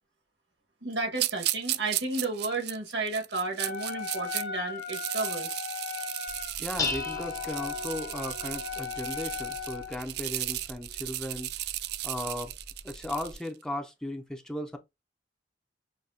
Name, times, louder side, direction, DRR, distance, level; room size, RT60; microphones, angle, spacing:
voice 1, 0.8-5.6, right 3 dB, 90° right, 1.7 m, -32 dB
sound 1, 1.2-4.4 4.8-13.5, right 15 dB, 65° right, 0.3 m, -35 dB
Wind instrument woodwind instrument, 3.6-10.0, left 6 dB, 75° left, 0.6 m, -37 dB
Dishes pots and pans, 6.3-13.3, left 3 dB, 20° left, 1.0 m, -40 dB
voice 2, 6.6-11.5 12.0-12.5 12.8-14.8, left 1 dB, 5° left, 0.7 m, -36 dB
6.4 x 2.8 x 2.8 m
head